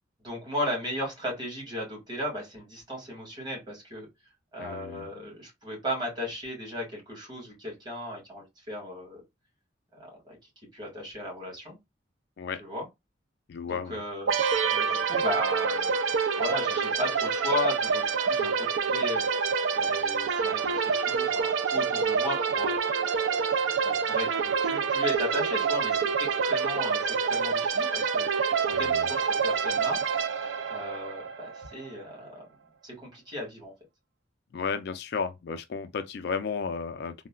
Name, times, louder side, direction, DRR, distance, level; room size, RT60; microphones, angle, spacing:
voice 1, 0.2-4.1 4.5-9.2 9.9-10.4 10.7-11.8 12.6-12.9 13.7-14.3 14.7-19.3 19.7-22.8 23.5-28.3 28.6-30.0 30.7-32.4 32.8-33.7, left 1 dB, 25° right, 1.5 m, -36 dB
voice 2, 4.6-5.1 12.4-12.6 13.5-14.0 28.7-29.1 34.5-37.1, left 5 dB, 60° left, 0.4 m, -33 dB
sound 1, 14.3-31.9, right 5 dB, 90° right, 0.4 m, -27 dB
3.7 x 2.0 x 2.2 m
head